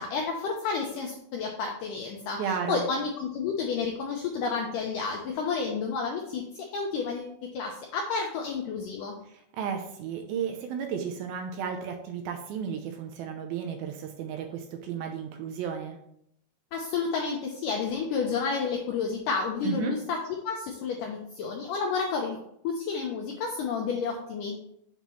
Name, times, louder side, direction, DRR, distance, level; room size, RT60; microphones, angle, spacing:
voice 1, 0.0-9.2 16.7-24.6, left 5 dB, 85° left, 1 dB, 1.9 m, -31 dB
voice 2, 2.4-2.8 9.3-16.0 19.6-20.0, right 7 dB, 80° right, 4 dB, 2.3 m, -33 dB
7.1 x 3.0 x 5.5 m, 0.73 s
omnidirectional pair, 4.6 m